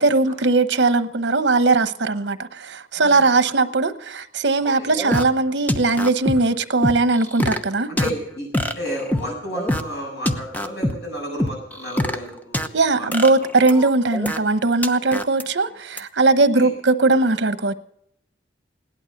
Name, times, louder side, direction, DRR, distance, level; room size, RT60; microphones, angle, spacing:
voice 1, 0.0-7.9 12.7-17.8, right 3 dB, 75° right, 0.9 m, -19 dB
voice 2, 3.0-3.3 4.8-4.9 7.9-13.3 16.5-16.7, equal, 65° left, 7.3 m, -32 dB
sound 1, 4.7-5.2 5.7-6.3 6.8-7.6 8.0-8.1 8.5-9.3 9.6-9.8 10.3-10.9 11.4-12.7 13.1-14.4 14.8-15.4 16.0-16.1, left 1 dB, 10° left, 0.9 m, -23 dB
17.5 x 11.5 x 6.5 m
head